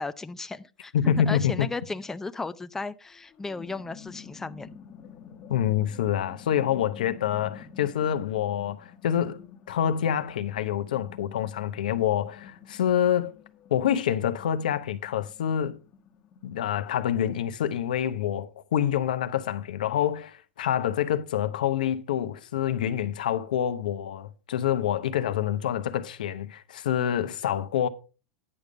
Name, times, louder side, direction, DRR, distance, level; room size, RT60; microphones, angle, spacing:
voice 1, 0.0-0.9 1.3-4.8, left 3 dB, 10° left, 0.4 m, -35 dB
voice 2, 0.9-1.7 5.5-9.4 9.7-13.3 13.7-15.8 16.4-27.9, left 10 dB, 85° left, 0.8 m, -27 dB
sound 1, 3.1-17.4, left 7 dB, 35° left, 1.2 m, -49 dB
9.8 x 5.2 x 4.9 m
supercardioid pair, 120°, 4 cm